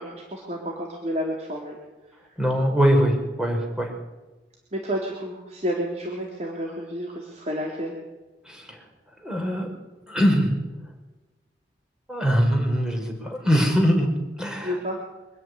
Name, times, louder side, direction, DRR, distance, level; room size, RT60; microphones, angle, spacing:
voice 1, 0.0-1.8 2.3-2.4 4.7-7.9 14.6-15.0, equal, 40° right, -2 dB, 3.7 m, -30 dB
voice 2, 2.4-3.9 8.5-8.8 9.2-9.7 10.1-10.6 12.1-14.1 14.4-14.8, equal, 5° right, 2 dB, 5.3 m, -22 dB
25.5 x 11.0 x 10.0 m, 1.1 s
head